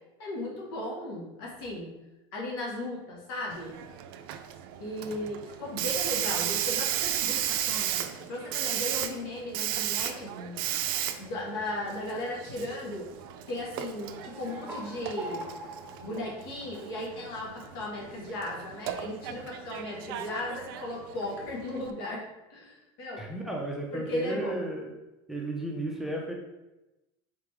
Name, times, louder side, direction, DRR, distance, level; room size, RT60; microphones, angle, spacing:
voice 1, 0.2-1.9 2.3-3.8 4.8-10.7 11.2-13.1 13.5-15.5 16.0-22.2 22.5-23.2 23.9-24.6, left 1 dB, 85° left, -3 dB, 1.4 m, -36 dB
Hiss, 3.5-21.9, right 11 dB, 85° right, 0.4 m, -35 dB
sound 1, 14.1-17.4, right 1 dB, 20° right, 1.3 m, -43 dB
voice 2, 23.2-24.9 25.3-26.3, right 1 dB, ahead, -1 dB, 0.7 m, -34 dB
3.9 x 3.4 x 3.3 m, 1.0 s
supercardioid pair, 125°, 12 cm